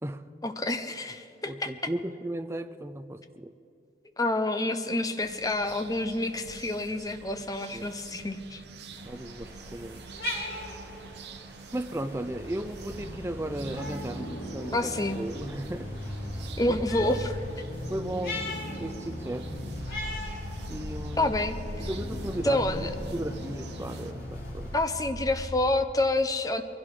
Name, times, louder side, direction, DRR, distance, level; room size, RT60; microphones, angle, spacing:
voice 1, 0.4-1.7 4.2-8.6 14.7-15.2 16.6-17.3 21.2-21.6 22.4-22.9 24.7-26.6, left 2 dB, 20° left, 8 dB, 0.7 m, -28 dB
voice 2, 1.5-3.5 7.7-7.9 9.0-10.0 11.7-14.8 15.2-15.9 16.7-17.3 17.9-18.5 18.8-19.6 20.7-21.3 21.8-22.9 23.1-24.7, right 1 dB, 15° right, 9 dB, 0.5 m, -35 dB
sound 1, 5.2-24.1, right 4 dB, 75° right, 0.8 m, -47 dB
sound 2, 8.9-24.9, left 2 dB, 60° left, 4.9 m, -42 dB
sound 3, 11.8-25.5, left 1 dB, 85° left, 3.6 m, -38 dB
22.5 x 16.0 x 3.8 m, 2.7 s
head